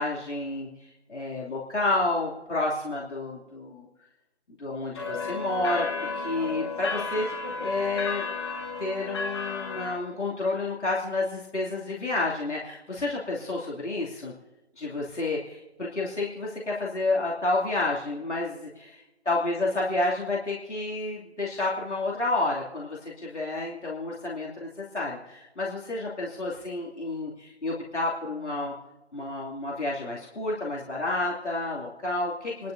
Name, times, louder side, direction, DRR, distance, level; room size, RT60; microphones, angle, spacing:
voice 1, 0.0-3.9 4.6-7.3 7.6-8.3 8.8-14.3 14.8-28.7 29.1-32.7, left 2 dB, 90° left, -5 dB, 2.8 m, -30 dB
sound 1, 5.0-9.9, left 4 dB, 25° left, 1.2 m, -33 dB
29.5 x 12.0 x 2.7 m, 1.0 s
figure-of-eight pair, 160°, 34 cm